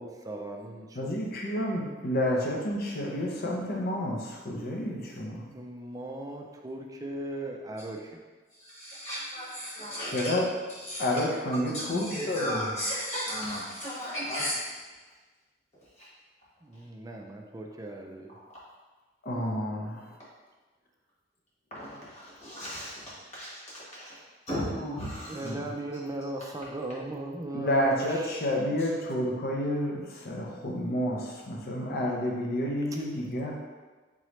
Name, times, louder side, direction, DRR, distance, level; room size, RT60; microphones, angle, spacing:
voice 1, 0.0-1.1 5.5-8.2 16.6-18.3 25.3-28.3, right 1 dB, 20° right, 2 dB, 0.4 m, -38 dB
voice 2, 0.9-5.5 10.0-10.5 11.0-12.7 19.2-20.2 25.4-25.7 27.5-33.5, left 1 dB, 55° left, -1 dB, 0.7 m, -30 dB
voice 3, 8.5-10.3 10.8-11.1 11.9-14.6 16.0-16.1 21.7-23.6 23.9-24.2 24.5-25.5, equal, 40° left, -8 dB, 1.4 m, -35 dB
3.7 x 3.1 x 3.1 m, 1.3 s
head